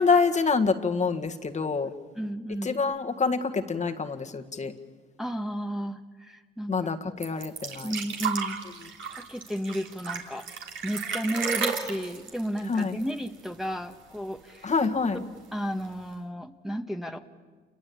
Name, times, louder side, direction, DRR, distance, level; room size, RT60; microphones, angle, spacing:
voice 1, 0.0-1.9 2.6-4.7 6.7-7.9 12.7-12.9 14.6-15.2, left 4 dB, 35° left, 5 dB, 1.7 m, -26 dB
voice 2, 2.1-2.7 5.2-6.9 7.8-8.6 9.1-10.5 10.8-14.7 15.1-15.2 15.5-17.2, equal, ahead, 3 dB, 1.4 m, -33 dB
sound 1, 7.2-13.6 13.9-14.0 14.3-15.0 15.8-15.9, right 6 dB, 70° right, 3.4 m, -33 dB
28.5 x 22.0 x 8.6 m, 1.5 s
cardioid pair, 90°, 20 cm